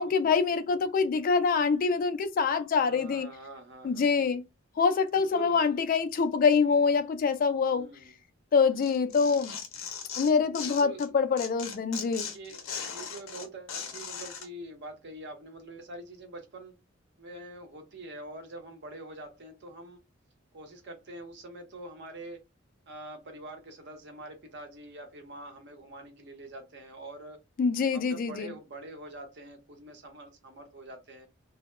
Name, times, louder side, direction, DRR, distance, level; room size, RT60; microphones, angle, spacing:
voice 1, 0.0-3.3 3.8-4.4 4.8-7.9 8.5-9.6 10.2-12.3 27.6-28.5, left 5 dB, 45° left, 0.3 m, -25 dB
voice 2, 2.8-4.3 5.1-5.7 7.7-8.1 8.6-9.4 10.6-11.1 12.0-16.8 17.2-20.0 20.5-22.4 22.9-27.4 27.9-31.3, right 1 dB, 55° right, 0.7 m, -45 dB
Tearing, 8.8-11.1 11.4-14.5, left 7 dB, 85° left, 0.6 m, -38 dB
2.2 x 2.0 x 3.0 m
head